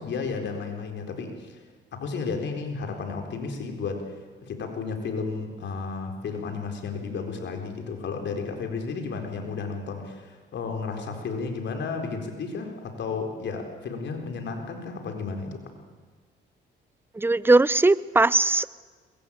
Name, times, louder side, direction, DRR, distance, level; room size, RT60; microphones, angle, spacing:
voice 1, 0.0-1.6 1.9-4.1 4.4-15.6, left 4 dB, 65° left, 4 dB, 4.2 m, -33 dB
voice 2, 17.2-18.7, right 2 dB, 10° right, 18 dB, 0.6 m, -19 dB
22.0 x 21.5 x 8.7 m, 1.4 s
cardioid pair, 90°, 20 cm